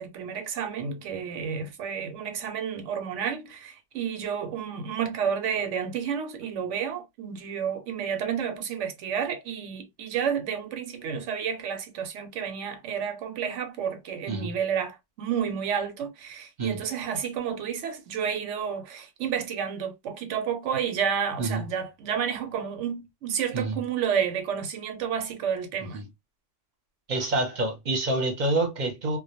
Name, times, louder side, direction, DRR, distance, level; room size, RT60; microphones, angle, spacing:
voice 1, 0.0-26.0, right 7 dB, 85° right, 0.9 m, -30 dB
voice 2, 27.1-29.2, right 2 dB, 45° right, 0.7 m, -27 dB
2.1 x 2.1 x 2.7 m
omnidirectional pair, 1.2 m